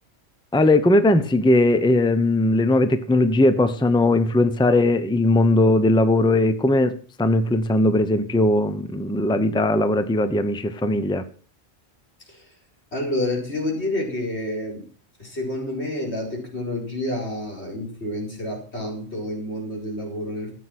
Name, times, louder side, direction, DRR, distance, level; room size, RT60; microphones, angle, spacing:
voice 1, 0.5-11.2, left 2 dB, 5° left, 10 dB, 0.8 m, -19 dB
voice 2, 12.9-14.9 15.2-20.5, left 1 dB, 75° left, -1 dB, 4.9 m, -29 dB
14.0 x 8.3 x 6.0 m, 0.42 s
omnidirectional pair, 1.1 m